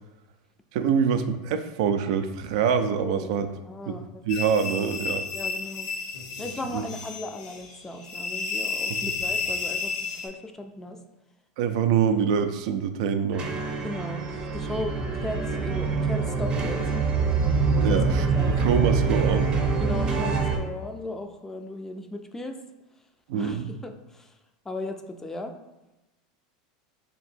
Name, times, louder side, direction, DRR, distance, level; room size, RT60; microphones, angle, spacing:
voice 1, 0.7-3.5 3.9-4.0 4.2-5.3 6.7-6.9 8.9-9.0 11.6-13.5 17.8-19.5 23.3-23.7, right 7 dB, 70° right, 9 dB, 0.4 m, -25 dB
voice 2, 2.9-3.4 3.6-4.2 4.5-4.6 5.3-6.1 6.4-11.0 13.8-16.9 17.8-19.1 19.8-22.6 23.3-24.4 24.6-25.5, left 2 dB, 10° left, 6 dB, 0.4 m, -37 dB
sound 1, 4.3-10.3, left 4 dB, 65° left, 0.8 m, -32 dB
sound 2, 6.0-6.9 9.0-9.6 11.8-12.6 14.7-15.6 17.4-18.4 20.2-21.0, left 2 dB, 90° left, 1.3 m, -46 dB
sound 3, 13.3-20.6, right 4 dB, 30° right, 0.7 m, -25 dB
3.3 x 2.8 x 4.4 m, 1.0 s
supercardioid pair, 125°, 4 cm